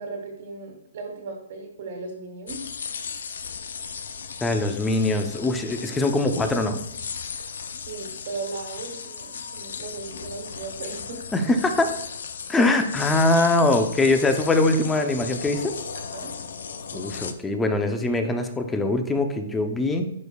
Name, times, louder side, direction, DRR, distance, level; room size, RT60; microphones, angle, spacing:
voice 1, 0.0-2.7 7.8-11.3 15.9-16.3 16.9-17.1, right 4 dB, 60° right, 0 dB, 1.6 m, -37 dB
sound 1, 2.5-17.3, left 6 dB, 80° left, 0.6 m, -36 dB
voice 2, 4.4-6.8 11.3-11.9 12.5-15.7 16.9-20.1, left 2 dB, 10° left, 6 dB, 0.7 m, -22 dB
10.5 x 5.3 x 2.4 m, 0.78 s
hypercardioid pair, 145°, 0 cm